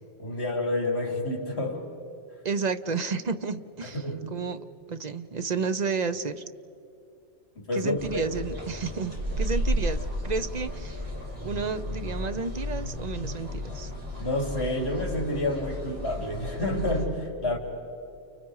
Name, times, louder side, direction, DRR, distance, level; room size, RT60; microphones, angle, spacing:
voice 1, 0.2-1.9 3.8-4.4 7.6-8.2 14.2-17.6, left 1 dB, 70° left, 2 dB, 3.1 m, -29 dB
voice 2, 2.4-4.0 4.3-4.6 4.9-6.4 7.7-11.0 11.4-13.9, right 4 dB, 45° right, 10 dB, 0.8 m, -31 dB
sound 1, 8.0-17.0, equal, 60° right, 4.7 m, -33 dB
30.0 x 29.5 x 4.8 m, 2.6 s
omnidirectional pair, 1.1 m